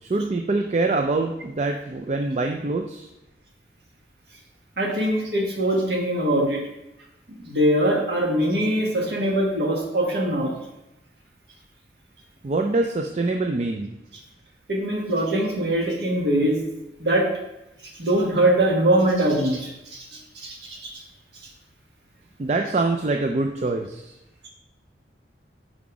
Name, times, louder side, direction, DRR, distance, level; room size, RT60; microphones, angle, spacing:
voice 1, 0.0-3.1 12.4-13.9 22.4-24.1, right 3 dB, 40° right, 4 dB, 0.4 m, -24 dB
voice 2, 4.8-6.6 7.4-10.6 14.7-16.7 17.0-17.3 17.9-20.9, right 1 dB, 65° right, -1 dB, 1.6 m, -22 dB
5.4 x 4.8 x 4.9 m, 0.93 s
head